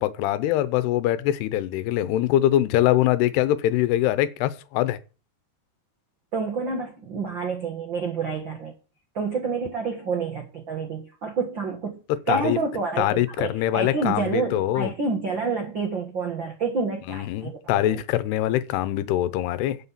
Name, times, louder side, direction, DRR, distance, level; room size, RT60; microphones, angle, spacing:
voice 1, 0.0-5.0 12.1-12.6 13.0-14.9 17.1-19.8, left 13 dB, 80° left, 2.9 m, -23 dB
voice 2, 6.3-8.7 9.1-12.0 12.3-18.0, right 4 dB, 65° right, 1.1 m, -28 dB
9.8 x 6.4 x 7.3 m
omnidirectional pair, 4.8 m